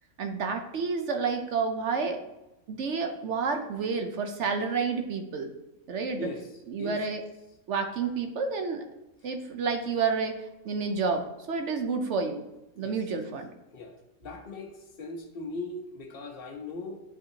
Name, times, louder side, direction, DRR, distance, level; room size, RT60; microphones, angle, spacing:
voice 1, 0.2-2.2 2.7-5.5 5.9-6.3 6.7-7.2 7.7-8.8 9.2-12.4 12.8-13.5, right 5 dB, 60° right, 5 dB, 0.9 m, -30 dB
voice 2, 6.2-6.5 6.8-7.0 12.8-13.0 13.7-17.0, left 2 dB, 45° left, 2 dB, 1.1 m, -39 dB
9.8 x 5.3 x 2.8 m, 0.97 s
omnidirectional pair, 1.5 m